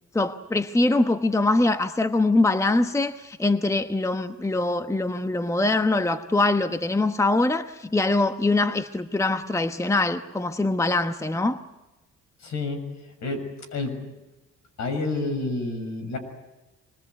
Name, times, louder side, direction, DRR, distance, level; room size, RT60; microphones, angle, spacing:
voice 1, 0.1-11.6, left 2 dB, 10° left, 9 dB, 1.1 m, -23 dB
voice 2, 12.4-12.8 13.2-13.4 13.7-13.9 14.8-16.2, left 3 dB, 65° left, 7 dB, 6.9 m, -28 dB
24.5 x 21.0 x 8.2 m, 1.1 s
cardioid pair, 90°, 30 cm